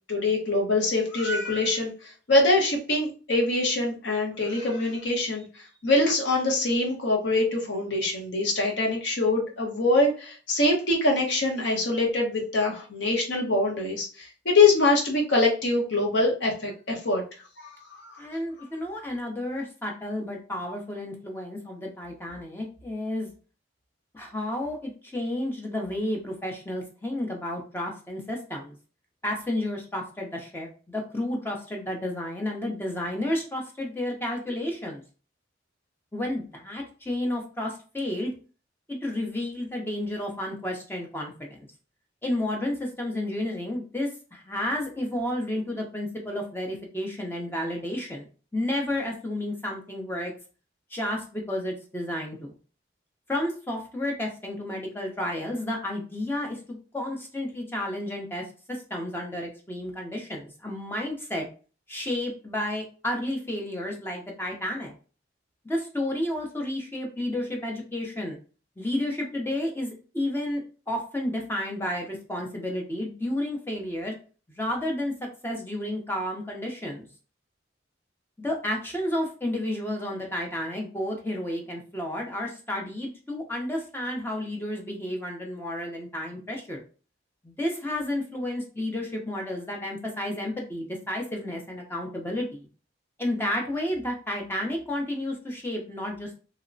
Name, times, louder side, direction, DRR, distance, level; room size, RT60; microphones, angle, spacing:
voice 1, 0.1-17.2 17.6-18.2, left 2 dB, 70° left, 0 dB, 0.8 m, -24 dB
voice 2, 18.2-23.3 24.1-28.8 29.2-35.0 36.1-38.3 38.9-41.7 42.2-50.3 50.9-52.5 53.3-61.5 61.9-64.9 65.6-68.4 68.8-70.6 70.9-74.1 74.5-75.1 75.4-77.1 78.4-86.8 87.4-92.7 93.2-96.3, left 1 dB, 10° left, 0 dB, 0.5 m, -31 dB
2.9 x 2.1 x 2.5 m, 0.36 s
head